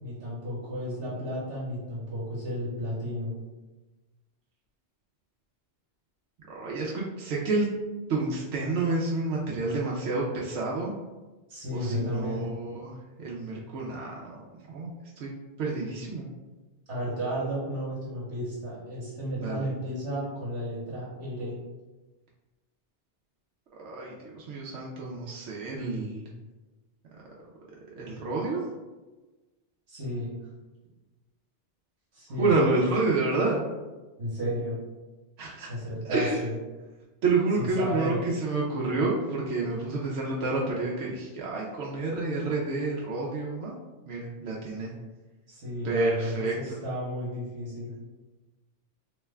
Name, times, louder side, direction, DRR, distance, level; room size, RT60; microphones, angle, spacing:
voice 1, 0.0-3.3 11.5-12.5 16.9-21.6 29.9-30.3 32.1-32.9 34.2-34.8 35.7-36.6 37.6-38.2 45.5-47.9, equal, 70° right, -7 dB, 1.2 m, -33 dB
voice 2, 6.5-7.7 8.1-10.9 11.7-14.4 14.7-15.3 15.6-16.3 19.4-19.7 23.7-26.3 28.0-28.7 32.4-33.6 35.4-35.7 36.0-36.4 37.2-43.7 44.1-44.9 45.8-46.8, right 3 dB, 90° right, -4 dB, 0.9 m, -29 dB
3.0 x 2.2 x 3.3 m, 1.2 s
omnidirectional pair, 1.2 m